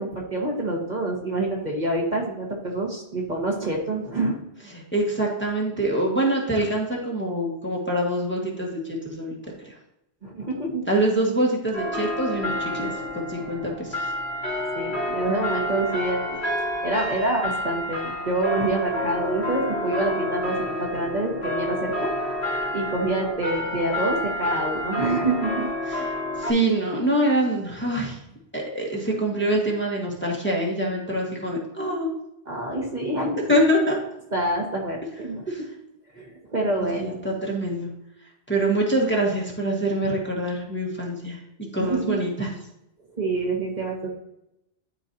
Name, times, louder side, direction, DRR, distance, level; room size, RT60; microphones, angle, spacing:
voice 1, 0.0-4.4 10.2-10.8 14.8-16.4 16.8-22.1 22.7-25.7 32.5-33.6 34.3-35.7 36.1-37.2 41.8-42.2 43.2-44.1, right 2 dB, 45° right, -2 dB, 1.7 m, -27 dB
voice 2, 4.7-9.4 9.6-9.7 10.9-14.0 25.9-26.1 26.4-28.2 28.5-32.1 33.5-34.0 35.2-35.3 36.8-37.9 38.5-41.4 41.7-42.5, right 1 dB, 10° left, -3 dB, 1.6 m, -25 dB
sound 1, 11.7-26.5, left 1 dB, 80° left, 3.3 m, -29 dB
12.5 x 4.6 x 2.8 m, 0.85 s
omnidirectional pair, 1.1 m